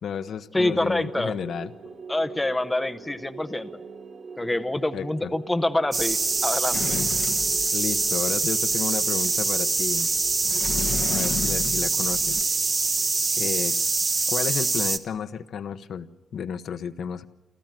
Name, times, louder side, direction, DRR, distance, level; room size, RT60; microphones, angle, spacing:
voice 1, 0.0-1.7 4.9-5.3 7.7-10.1 11.1-12.5 13.4-13.8 14.3-17.3, left 7 dB, 60° left, 10 dB, 0.9 m, -32 dB
voice 2, 0.5-1.3 2.1-3.8 4.4-7.0, left 1 dB, 10° left, 10 dB, 0.7 m, -26 dB
sound 1, 1.0-13.7, right 5 dB, 55° right, 2.9 m, -43 dB
sound 2, 5.9-15.0, right 3 dB, 25° right, 0.9 m, -24 dB
Sliding door, 6.7-8.2 10.4-12.4, left 7 dB, 80° left, 1.2 m, -33 dB
29.0 x 14.0 x 9.0 m, 1.1 s
wide cardioid pair, 180°, 0 cm